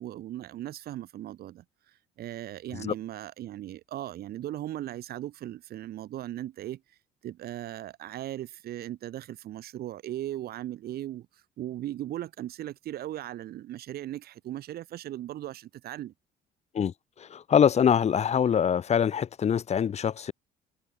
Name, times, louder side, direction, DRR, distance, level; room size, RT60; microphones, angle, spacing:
voice 1, 0.0-1.6 2.2-6.8 7.2-11.3 11.6-16.1, right 13 dB, 65° right, 2.5 m, -38 dB
voice 2, 16.7-20.3, left 8 dB, 40° left, 1.6 m, -24 dB
cardioid pair, 110°, 17 cm